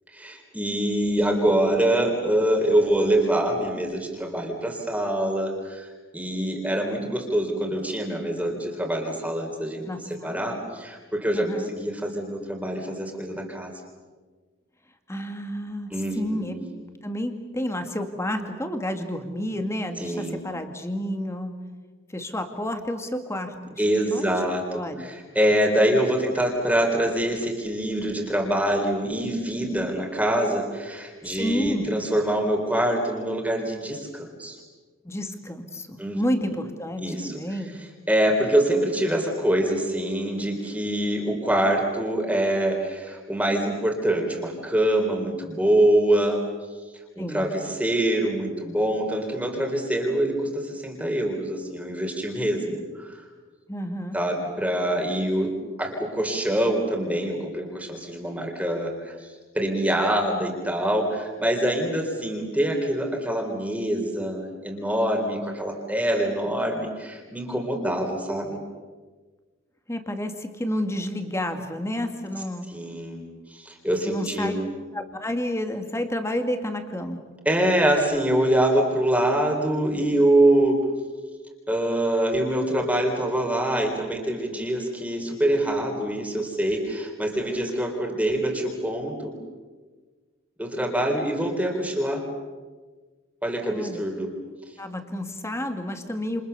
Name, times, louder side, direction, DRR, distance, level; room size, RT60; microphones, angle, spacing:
voice 1, 0.1-5.9 6.1-13.7 15.9-16.6 20.0-20.4 23.8-34.6 36.0-36.2 37.0-37.6 38.1-46.4 47.2-53.2 54.1-59.3 59.5-68.6 72.7-73.2 73.5-74.7 77.5-80.8 81.7-89.4 90.6-92.3 93.4-94.3, right 1 dB, 5° right, 1 dB, 3.7 m, -25 dB
voice 2, 9.9-10.6 11.3-11.7 15.1-16.6 17.0-21.6 22.1-23.8 24.1-24.4 24.7-25.1 31.2-32.0 35.0-37.8 47.2-47.5 53.7-54.2 69.9-72.7 74.1-74.5 74.9-77.2 93.7-94.0 94.8-96.4, left 1 dB, 15° left, 6 dB, 2.2 m, -30 dB
29.5 x 29.0 x 6.9 m, 1.4 s
head